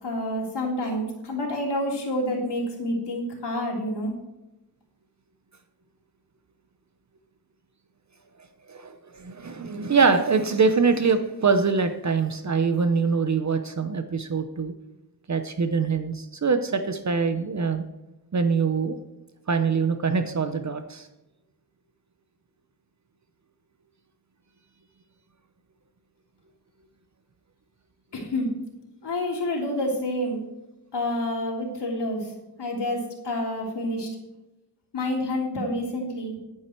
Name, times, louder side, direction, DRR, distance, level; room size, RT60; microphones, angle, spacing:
voice 1, 0.0-4.1 28.1-28.5 29.0-30.4 30.9-32.3 32.6-34.1 34.9-36.4, left 1 dB, 85° left, -1 dB, 3.3 m, -28 dB
voice 2, 8.7-14.7 15.3-17.8 18.3-19.0 19.5-21.1, right 5 dB, 45° right, 8 dB, 0.8 m, -24 dB
11.0 x 9.5 x 4.5 m, 0.97 s
wide cardioid pair, 140°, 40 cm